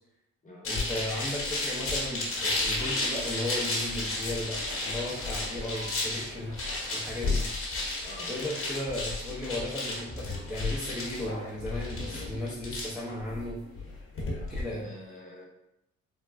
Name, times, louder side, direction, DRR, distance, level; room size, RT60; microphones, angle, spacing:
Shuffling Dominos, 0.6-14.6, left 2 dB, 50° left, 1.0 m, -33 dB
voice 1, 0.6-7.5 8.3-13.6 14.5-14.9, left 1 dB, 5° right, -6 dB, 0.6 m, -35 dB
sound 1, 2.3-7.3, right 1 dB, 40° right, 1.0 m, -50 dB
sound 2, 5.7-7.4, right 7 dB, 75° right, 1.5 m, -55 dB
voice 2, 8.0-8.4 14.7-15.5, left 1 dB, 25° left, -5 dB, 1.0 m, -46 dB
3.5 x 2.1 x 2.3 m, 0.84 s
cardioid pair, 90°, 30 cm